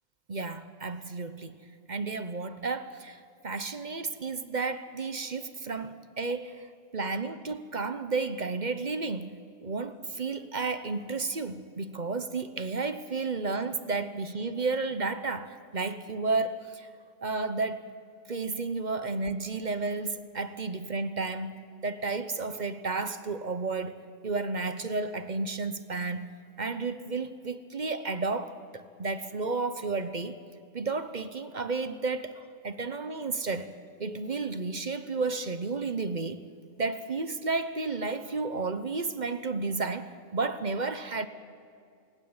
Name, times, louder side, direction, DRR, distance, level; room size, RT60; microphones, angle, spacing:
voice 1, 0.3-1.6 1.9-6.7 6.9-9.3 9.6-16.9 17.2-17.8 18.3-24.0 24.2-26.3 26.6-30.4 30.7-33.7 34.0-36.4 36.8-41.3, right 3 dB, 40° right, 12 dB, 0.9 m, -32 dB
29.5 x 20.0 x 8.8 m, 2.4 s
omnidirectional pair, 1.4 m